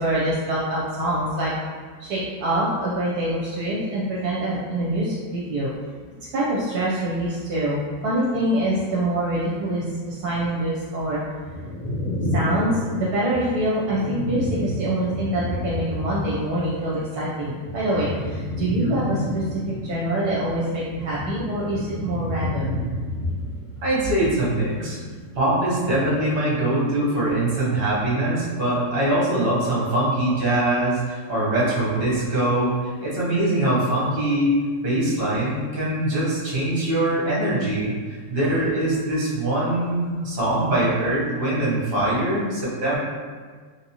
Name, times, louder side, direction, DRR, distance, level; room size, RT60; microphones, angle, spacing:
voice 1, 0.0-1.5 2.0-5.7 6.3-11.2 12.3-22.8, right 1 dB, 75° right, -6 dB, 1.1 m, -25 dB
sound 1, 11.4-16.7 17.0-25.6 25.9-26.6, left 1 dB, 65° left, 1.5 m, -31 dB
voice 2, 23.8-25.0 25.3-34.5 34.8-43.0, right 1 dB, 40° right, -7 dB, 1.1 m, -23 dB
3.5 x 2.7 x 2.8 m, 1.5 s
omnidirectional pair, 1.8 m